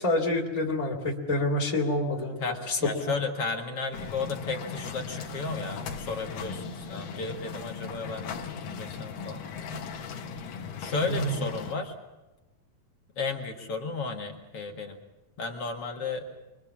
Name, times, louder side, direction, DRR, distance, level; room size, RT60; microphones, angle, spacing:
voice 1, 0.0-2.8 3.1-3.2 11.1-11.4, left 1 dB, 10° left, -1 dB, 3.0 m, -28 dB
voice 2, 2.4-9.5 10.8-11.9 13.2-15.0 15.4-16.2, left 3 dB, 50° left, 2 dB, 2.5 m, -34 dB
sound 1, 3.9-11.7, left 6 dB, 90° left, 3.3 m, -38 dB
26.0 x 23.0 x 7.4 m, 1.1 s
omnidirectional pair, 3.9 m